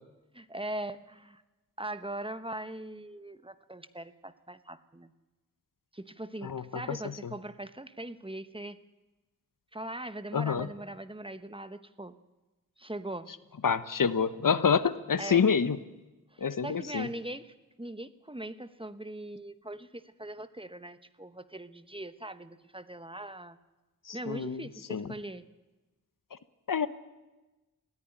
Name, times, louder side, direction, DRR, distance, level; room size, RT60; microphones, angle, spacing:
voice 1, 0.3-1.4 1.8-5.1 5.9-8.8 9.7-12.2 12.8-13.3 15.2-15.4 16.3-23.6 24.1-25.4, right 1 dB, 15° right, 12 dB, 0.9 m, -41 dB
voice 2, 6.4-7.3 10.3-10.7 13.6-15.8 16.4-17.1 24.1-25.1 26.7-26.9, left 6 dB, 80° left, 13 dB, 0.9 m, -28 dB
19.5 x 14.5 x 10.0 m, 1.1 s
wide cardioid pair, 60°, 33 cm